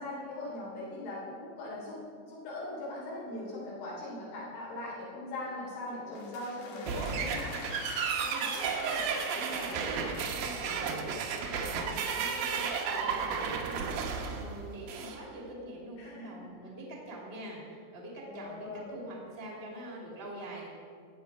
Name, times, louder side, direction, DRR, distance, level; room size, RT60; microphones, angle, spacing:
voice 1, 0.0-2.0 2.2-7.6 9.4-9.7 16.0-16.5 18.3-19.0, left 1 dB, 85° left, -6 dB, 5.8 m, -40 dB
sound 1, 5.9-11.0, left 4 dB, 65° left, 2.7 m, -46 dB
sound 2, 6.9-15.2, right 6 dB, 75° right, 2.1 m, -33 dB
voice 2, 8.2-9.0 9.3-10.9 11.3-20.7, right 1 dB, 30° right, -2 dB, 1.0 m, -44 dB
14.0 x 8.6 x 4.7 m, 2.2 s
omnidirectional pair, 5.3 m